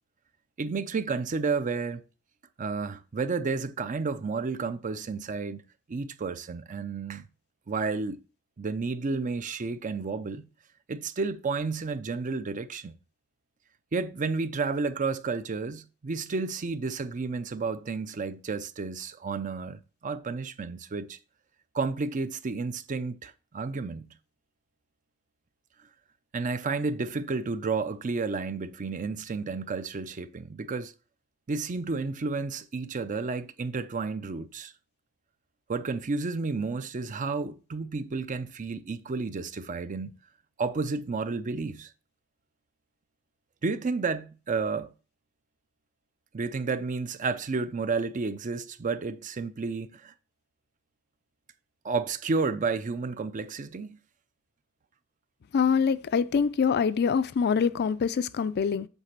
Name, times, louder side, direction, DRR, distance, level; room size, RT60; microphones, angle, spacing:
voice 1, 0.6-2.0 2.6-5.6 5.9-7.3 7.7-8.2 8.6-10.5 10.9-12.9 13.9-21.2 21.7-24.1 26.3-30.9 31.5-34.7 35.7-40.2 40.6-41.9 43.6-44.9 46.3-50.1 51.8-54.0, right 4 dB, 40° right, 0.5 m, -31 dB
voice 2, 55.5-58.9, left 6 dB, 50° left, 0.4 m, -25 dB
8.0 x 3.3 x 5.8 m
head